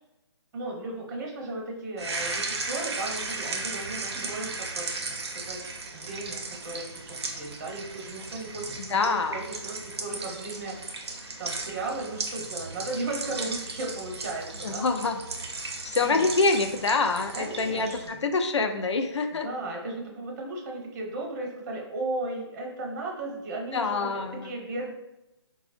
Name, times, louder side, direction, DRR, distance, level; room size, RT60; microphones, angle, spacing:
voice 1, 0.5-5.6 5.9-14.9 16.0-16.3 17.3-18.2 19.4-24.9, right 2 dB, 40° right, 0 dB, 0.9 m, -36 dB
sound 1, 2.0-18.1, right 3 dB, 65° right, 0.7 m, -36 dB
voice 2, 8.8-9.4 14.6-15.2 15.8-19.5 23.7-24.6, left 3 dB, 80° left, 6 dB, 0.5 m, -26 dB
4.0 x 2.0 x 2.5 m, 0.95 s
hypercardioid pair, 150°, 15 cm